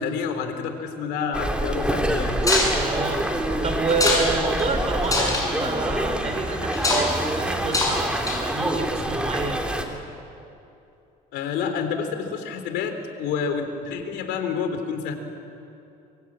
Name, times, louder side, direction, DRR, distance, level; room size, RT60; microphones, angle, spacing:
voice 1, 0.0-2.5 11.3-15.1, left 6 dB, 90° left, 7 dB, 3.3 m, -28 dB
sound 1, 1.3-9.8, right 1 dB, 5° right, 2.8 m, -26 dB
sound 2, 2.4-2.7 3.9-4.3 4.6-4.7 5.0-5.4 6.7-7.1 7.7-8.0 8.3-8.6, left 2 dB, 20° left, 7.8 m, -22 dB
voice 2, 2.7-3.3 3.6-9.6, right 3 dB, 40° right, 5 dB, 5.1 m, -28 dB
25.0 x 24.5 x 8.8 m, 2.7 s
cardioid pair, 110°, 17 cm